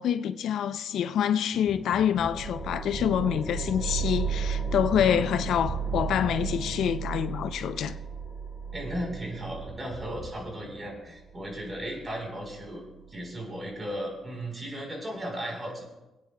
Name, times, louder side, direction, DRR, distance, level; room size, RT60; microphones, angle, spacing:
voice 1, 0.0-8.0, left 9 dB, 75° left, 0.4 m, -26 dB
sound 1, 1.5-10.9, equal, 5° right, 3.5 m, -42 dB
sound 2, 2.2-13.2, right 6 dB, 10° left, 4.7 m, -35 dB
voice 2, 8.7-15.8, equal, 25° right, 4.1 m, -36 dB
27.0 x 9.4 x 2.3 m
cardioid pair, 90°, 0 cm